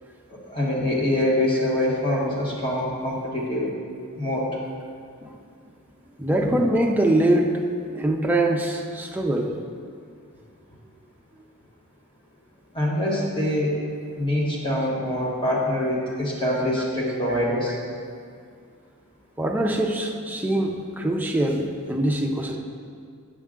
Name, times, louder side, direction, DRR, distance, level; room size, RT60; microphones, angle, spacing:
voice 1, 0.5-3.7 4.2-4.5 6.4-6.6 12.7-13.8 14.2-17.7, left 1 dB, 25° left, -4 dB, 1.4 m, -24 dB
voice 2, 6.2-7.5 7.9-9.5 19.4-22.6, right 1 dB, 10° right, 0 dB, 0.5 m, -23 dB
8.0 x 6.4 x 3.7 m, 2.2 s
head